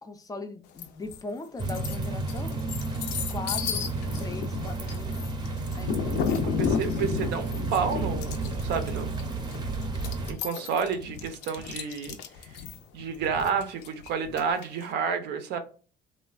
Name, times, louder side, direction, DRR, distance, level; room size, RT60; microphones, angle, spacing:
voice 1, 0.0-2.6 3.3-3.8 4.2-5.2 5.7-6.8, left 3 dB, 20° left, 0.3 m, -39 dB
sound 1, 0.8-1.2 1.6-14.9, left 7 dB, 85° left, 0.4 m, -33 dB
sound 2, 1.6-10.3, right 3 dB, 25° right, 0.5 m, -32 dB
voice 2, 6.6-9.1 10.3-12.2 12.9-15.6, right 6 dB, 80° right, 0.5 m, -30 dB
3.1 x 2.1 x 2.3 m
cardioid pair, 110°, 17 cm